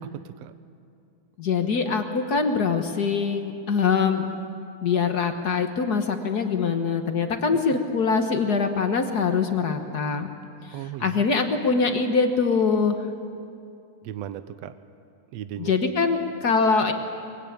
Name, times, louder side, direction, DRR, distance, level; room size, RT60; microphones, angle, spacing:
voice 1, 0.1-0.5 7.5-7.8 10.7-11.3 14.0-14.8 15.3-15.7, right 12 dB, 70° right, 12 dB, 1.8 m, -37 dB
voice 2, 1.4-4.3 4.8-10.3 11.0-13.1 15.6-16.9, left 5 dB, 50° left, 6 dB, 1.1 m, -23 dB
23.5 x 22.5 x 8.8 m, 2.5 s
omnidirectional pair, 3.4 m